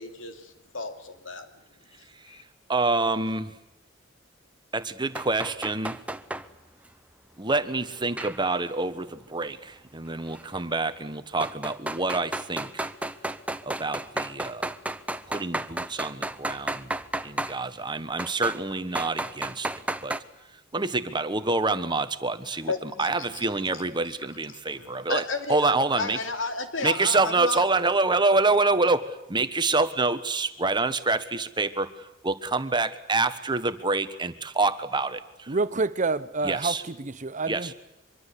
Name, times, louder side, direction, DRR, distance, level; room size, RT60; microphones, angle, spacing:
voice 1, 0.0-1.5 2.0-2.4 22.7-23.8 24.7-27.6, left 3 dB, 90° left, 3.0 m, -33 dB
voice 2, 2.7-3.6 4.7-6.0 7.4-12.9 13.6-14.7 15.3-16.9 17.2-20.2 20.7-25.2 25.5-26.2 26.8-35.6 36.4-36.8 37.5-37.7, right 3 dB, 25° right, 1.3 m, -27 dB
sound 1, 5.2-6.5 8.2-8.7 10.3-10.4 11.4-17.6 18.2-18.6 18.9-20.2, right 1 dB, 5° right, 0.9 m, -32 dB
voice 3, 35.5-37.7, right 3 dB, 40° right, 0.9 m, -28 dB
24.5 x 23.0 x 8.3 m
head